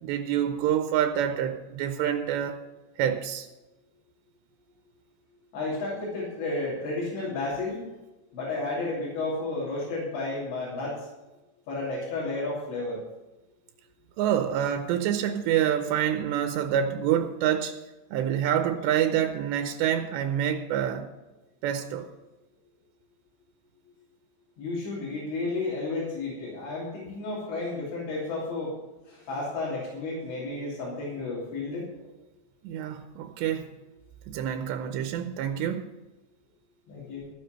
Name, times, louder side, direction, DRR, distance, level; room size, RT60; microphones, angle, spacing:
voice 1, 0.0-2.6 3.0-3.5 14.2-17.8 18.1-21.1 21.6-22.1 32.6-33.7 34.3-35.9, right 10 dB, 85° right, 6 dB, 2.9 m, -27 dB
voice 2, 5.5-7.8 8.3-11.1 11.7-13.0 24.6-28.7 29.0-31.9 36.9-37.3, left 2 dB, 85° left, -6 dB, 5.4 m, -32 dB
14.5 x 7.8 x 6.6 m, 1.1 s
omnidirectional pair, 5.0 m